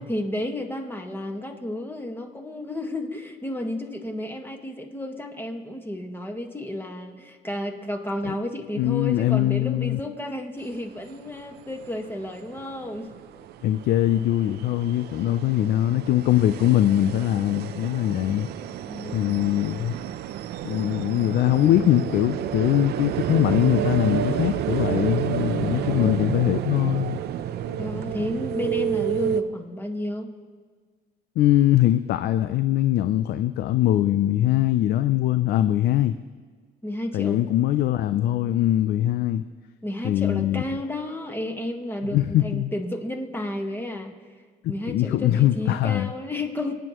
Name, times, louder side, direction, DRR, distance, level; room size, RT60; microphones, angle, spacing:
voice 1, 0.1-13.1 18.9-19.4 25.6-26.2 27.8-30.3 36.8-37.4 39.8-44.1 44.7-46.8, left 1 dB, 15° left, 3 dB, 1.5 m, -32 dB
voice 2, 8.8-10.0 13.6-18.5 19.1-19.9 20.6-27.2 31.4-36.2 37.1-39.4 40.0-40.6 42.1-42.7 44.6-46.1, left 13 dB, 75° left, 12 dB, 0.4 m, -22 dB
sound 1, 10.7-10.8 11.1-29.4, right 10 dB, 75° right, 0.6 m, -30 dB
24.5 x 9.1 x 3.0 m, 1.5 s
cardioid pair, 90°, 17 cm